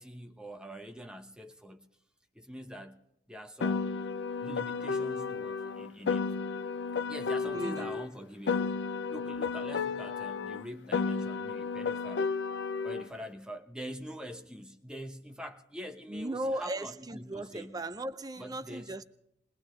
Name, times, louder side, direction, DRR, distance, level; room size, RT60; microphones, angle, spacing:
voice 1, 0.0-1.9 2.3-3.0 3.3-4.1 4.4-6.4 7.1-8.8 9.1-12.3 12.8-17.8 18.4-19.0, equal, 5° right, 1.0 m, -44 dB
Piano, 3.6-8.1 8.5-13.1, left 5 dB, 80° left, 0.5 m, -33 dB
voice 2, 7.5-8.0 16.1-19.0, right 1 dB, 20° right, 0.5 m, -37 dB
21.5 x 20.0 x 3.3 m
head